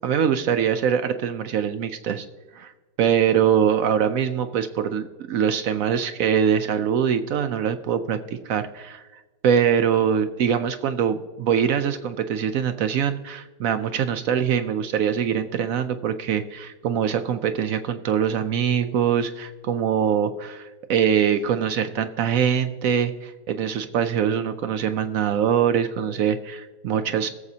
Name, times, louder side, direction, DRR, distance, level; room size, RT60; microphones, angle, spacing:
voice 1, 0.0-2.3 2.5-2.7 3.0-8.2 8.4-27.3, right 8 dB, 70° right, 9 dB, 0.8 m, -23 dB
17.5 x 7.4 x 2.7 m, 1.3 s
omnidirectional pair, 1.8 m